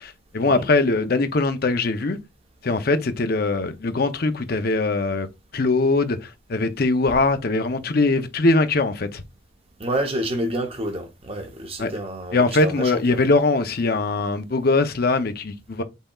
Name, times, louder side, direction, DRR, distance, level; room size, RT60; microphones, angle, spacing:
voice 1, 0.0-2.2 2.6-5.3 5.5-9.2 11.8-11.9 12.3-15.8, left 3 dB, 50° left, 0.6 m, -21 dB
voice 2, 9.8-13.2, right 1 dB, 30° right, 0.8 m, -28 dB
5.5 x 4.1 x 2.3 m
head